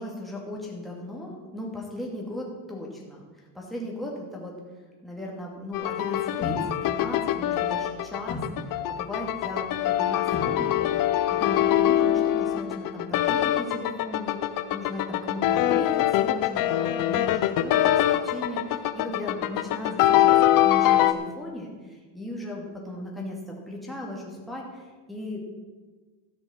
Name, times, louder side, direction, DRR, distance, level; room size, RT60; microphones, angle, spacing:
voice 1, 0.0-4.6 5.0-25.4, left 1 dB, ahead, -3 dB, 2.5 m, -37 dB
sound 1, 5.7-21.1, left 12 dB, 50° left, 0.8 m, -23 dB
sound 2, 6.4-12.5, left 2 dB, 35° left, 2.9 m, -40 dB
13.5 x 7.1 x 7.2 m, 1.3 s
cardioid pair, 130°, 41 cm